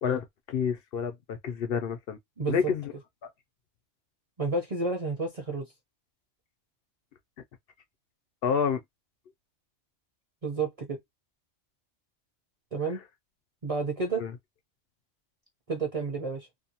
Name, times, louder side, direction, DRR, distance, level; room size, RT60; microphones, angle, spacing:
voice 1, 0.0-2.2 2.5-2.9 8.4-8.8 14.2-14.3, left 7 dB, 65° left, 0.7 m, -29 dB
voice 2, 2.4-2.7 4.4-5.7 10.4-11.0 12.7-13.0 13.6-14.2 15.7-16.5, right 3 dB, 35° right, 0.7 m, -30 dB
2.6 x 2.2 x 2.7 m
omnidirectional pair, 1.2 m